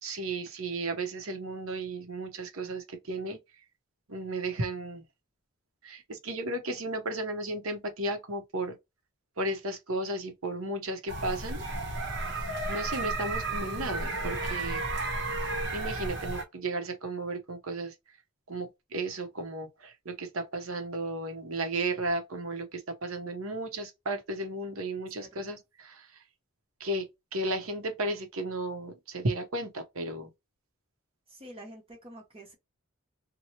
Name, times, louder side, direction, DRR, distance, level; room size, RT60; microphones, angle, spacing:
voice 1, 0.0-3.4 4.1-5.0 5.8-8.8 9.4-11.6 12.7-14.8 15.7-17.9 18.5-26.1 26.8-30.3, right 2 dB, 75° right, 0.9 m, -34 dB
sound 1, 11.1-16.4, right 2 dB, 55° right, 0.9 m, -33 dB
voice 2, 25.1-25.6 31.3-32.5, right 1 dB, 25° right, 0.9 m, -48 dB
2.9 x 2.2 x 2.7 m
head